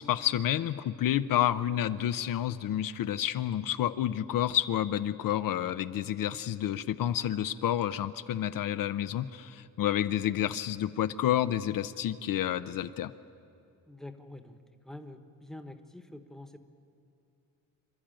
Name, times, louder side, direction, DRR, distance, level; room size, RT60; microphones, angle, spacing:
voice 1, 0.0-13.1, left 11 dB, 70° left, 12 dB, 0.6 m, -29 dB
voice 2, 13.9-14.6 14.8-16.6, left 1 dB, ahead, 7 dB, 1.1 m, -46 dB
27.5 x 12.0 x 8.9 m, 2.6 s
cardioid pair, 130°, 34 cm